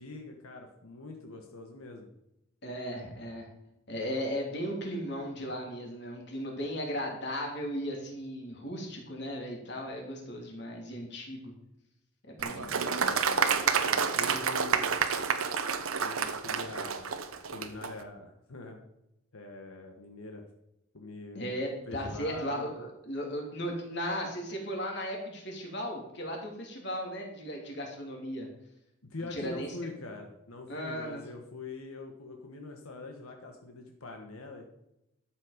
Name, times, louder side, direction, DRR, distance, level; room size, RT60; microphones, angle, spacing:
voice 1, 0.0-2.1 12.4-14.9 16.0-17.2 17.5-18.8 19.3-20.5 20.9-22.7 29.0-34.7, left 2 dB, 85° left, 3 dB, 1.4 m, -44 dB
voice 2, 2.6-3.5 3.9-11.4 12.3-12.9 21.3-28.5 29.3-29.9 30.7-31.2, equal, 50° left, 1 dB, 3.0 m, -36 dB
Applause, 12.4-17.9, right 6 dB, 85° right, 1.0 m, -29 dB
12.5 x 7.6 x 5.1 m, 0.85 s
head